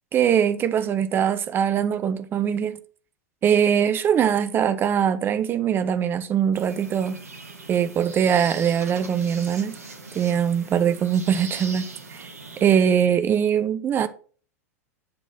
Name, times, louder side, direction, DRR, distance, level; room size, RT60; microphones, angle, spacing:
voice 1, 0.1-2.8 3.4-7.2 7.7-9.8 10.1-12.3 12.6-14.1, right 8 dB, 25° right, 0.6 m, -22 dB
sound 1, 6.5-12.6, right 3 dB, 65° right, 2.5 m, -40 dB
11.5 x 4.0 x 5.7 m
figure-of-eight pair, 90°, 9 cm